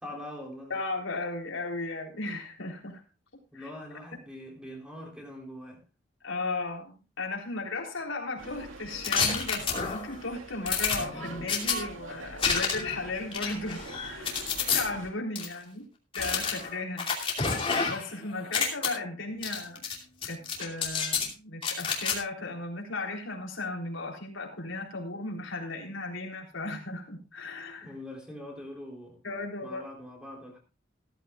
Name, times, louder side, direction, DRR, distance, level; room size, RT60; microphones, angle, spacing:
voice 1, 0.0-0.7 3.5-5.8 27.8-29.2 29.6-30.6, left 1 dB, 5° right, 0 dB, 3.6 m, -43 dB
voice 2, 0.7-3.0 3.5-3.7 6.2-15.9 16.1-17.1 17.9-19.8 20.2-27.9 29.2-29.8, left 3 dB, 85° left, 0 dB, 3.7 m, -36 dB
sound 1, 8.4-15.1, right 3 dB, 90° right, 2.3 m, -44 dB
sound 2, 9.0-10.1 10.7-11.8 12.4-13.0 13.3-14.8 15.4-15.5 16.1-18.1 18.4-18.9 19.4-20.0 20.2-21.3 21.6-22.2, left 5 dB, 25° left, 2.6 m, -29 dB
15.5 x 14.0 x 2.4 m, 0.31 s
head